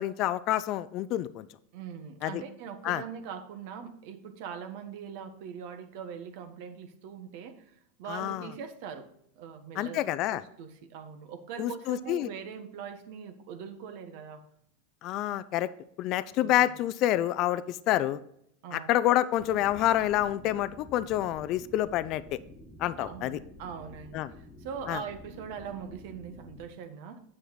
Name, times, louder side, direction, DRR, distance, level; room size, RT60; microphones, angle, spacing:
voice 1, 0.0-1.5 2.2-2.4 2.8-3.0 8.1-8.5 9.8-10.4 11.6-12.3 15.0-15.7 16.0-18.2 18.7-22.4 22.8-23.4 24.1-24.3 24.9-25.0, left 13 dB, 50° left, 15 dB, 0.5 m, -28 dB
voice 2, 1.7-9.1 9.4-14.4 16.4-16.7 18.6-18.9 23.0-27.2, right 7 dB, 60° right, 8 dB, 1.3 m, -42 dB
sound 1, 19.4-26.7, equal, 5° left, 1.5 m, -50 dB
9.2 x 6.5 x 3.9 m, 0.72 s
hypercardioid pair, 100°, 0 cm